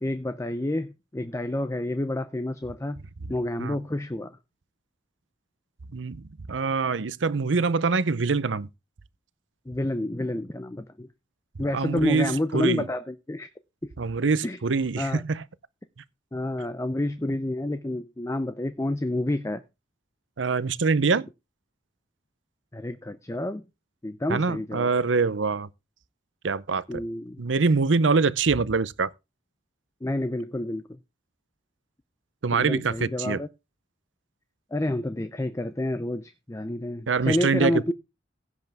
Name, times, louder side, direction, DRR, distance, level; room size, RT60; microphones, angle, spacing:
voice 1, 0.0-3.0 3.3-4.4 9.7-11.1 11.6-13.5 14.4-14.6 15.0-15.2 16.3-19.6 22.7-23.6 24.0-24.9 26.9-27.4 30.0-31.0 32.5-33.5 34.7-37.9, left 1 dB, 15° left, 0.6 m, -29 dB
voice 2, 5.9-8.7 11.7-12.8 14.0-15.4 20.4-21.3 24.3-25.7 26.4-27.0 27.4-29.1 32.4-33.4 37.1-37.9, right 4 dB, 85° right, 0.7 m, -24 dB
16.0 x 8.1 x 3.5 m
head